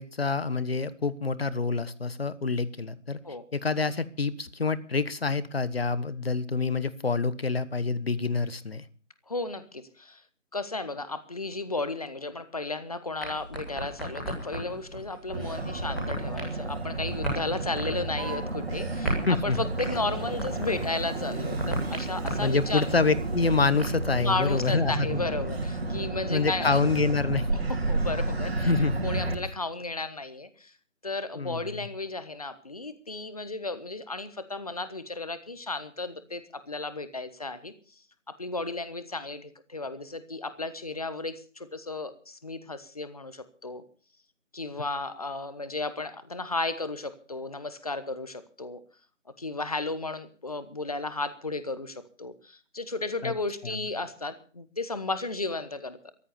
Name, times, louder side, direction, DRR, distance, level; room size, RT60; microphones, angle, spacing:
voice 1, 0.0-3.2 3.5-8.8 19.3-19.6 22.4-25.2 26.3-27.5 28.6-28.9 31.3-31.9 53.2-53.3 53.6-53.8, left 4 dB, 50° left, 16 dB, 1.3 m, -27 dB
voice 2, 9.3-10.2 10.5-19.2 19.4-22.9 24.2-26.8 27.7-28.7 29.0-30.7 31.0-37.7 38.4-43.8 44.5-48.8 49.4-56.0, left 3 dB, 30° left, 13 dB, 1.2 m, -34 dB
sound 1, 13.2-24.6, right 1 dB, ahead, 2.7 m, -37 dB
Motor vehicle (road), 15.3-29.4, right 2 dB, 50° right, 4.3 m, -31 dB
14.5 x 12.0 x 7.0 m, 0.40 s
figure-of-eight pair, 175°, 38 cm